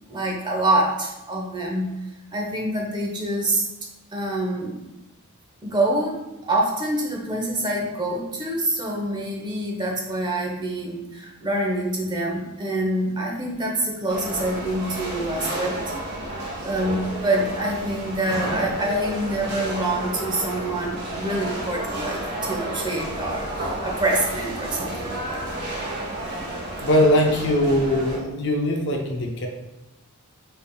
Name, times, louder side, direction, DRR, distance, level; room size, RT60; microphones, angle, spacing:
voice 1, 0.1-1.9 2.3-3.6 4.1-4.8 5.6-6.2 6.4-15.8 16.3-25.8, right 1 dB, 20° right, -1 dB, 0.7 m, -26 dB
sound 1, 14.1-28.2, right 1 dB, 50° right, 1.0 m, -31 dB
voice 2, 26.8-29.5, left 1 dB, 55° left, 2 dB, 0.6 m, -21 dB
5.5 x 3.5 x 2.3 m, 0.98 s
head